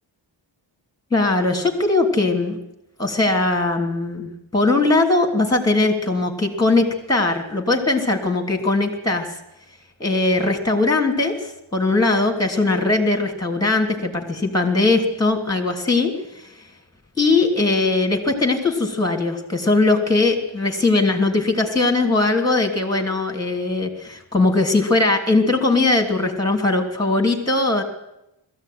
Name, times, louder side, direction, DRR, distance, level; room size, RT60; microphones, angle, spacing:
voice 1, 1.1-2.6 3.0-9.4 10.0-16.1 16.4-16.5 17.2-27.8, left 2 dB, 10° left, 4 dB, 3.0 m, -20 dB
20.5 x 14.5 x 9.4 m, 0.86 s
wide cardioid pair, 130°, 46 cm